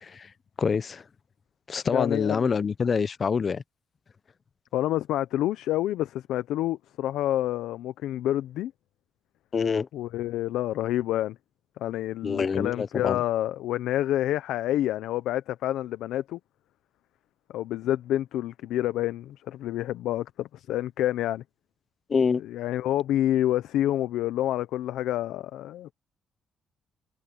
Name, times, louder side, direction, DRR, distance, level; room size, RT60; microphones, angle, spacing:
voice 1, 0.6-1.0 1.7-3.6 9.5-9.9 12.2-13.2 22.1-22.4, left 5 dB, 40° left, 0.8 m, -26 dB
voice 2, 1.9-2.5 4.7-8.7 9.9-11.4 11.8-16.4 17.5-21.4 22.4-25.9, left 13 dB, 85° left, 0.7 m, -28 dB
cardioid pair, 90°, 0 cm